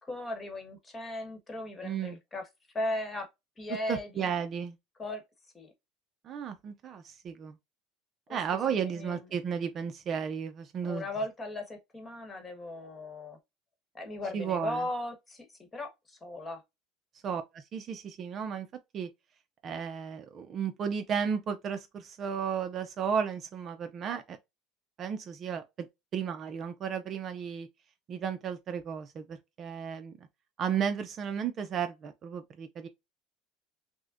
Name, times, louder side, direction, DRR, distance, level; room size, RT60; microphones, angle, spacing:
voice 1, 0.1-2.4 2.7-3.3 3.6-4.3 5.0-5.2 5.5-5.7 8.8-9.2 10.8-13.4 13.9-15.4 15.7-16.6, left 1 dB, 15° left, 1.2 m, -37 dB
voice 2, 1.8-2.2 3.9-4.8 6.2-7.6 8.3-11.1 14.3-14.9 17.2-18.7 18.9-19.1 19.6-24.4 25.0-25.9 26.1-27.7 28.1-30.3 30.6-32.9, right 7 dB, 35° right, 0.5 m, -34 dB
6.0 x 2.1 x 2.4 m
cardioid pair, 140°, 0 cm